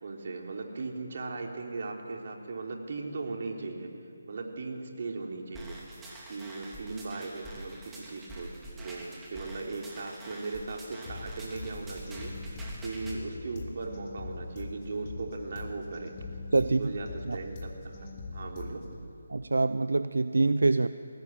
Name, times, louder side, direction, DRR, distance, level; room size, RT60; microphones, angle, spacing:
voice 1, 0.0-3.9 4.3-5.8 6.3-16.1 16.7-18.1 18.3-18.9, right 3 dB, 50° right, 1 dB, 3.6 m, -38 dB
sound 1, 5.5-13.2, right 1 dB, 10° right, 3.1 m, -46 dB
sound 2, 11.1-19.1, left 2 dB, 30° left, 3.2 m, -42 dB
voice 2, 19.3-20.9, right 3 dB, 85° right, 12 dB, 0.7 m, -25 dB
21.5 x 17.5 x 9.1 m, 2.5 s
figure-of-eight pair, 160°, 0 cm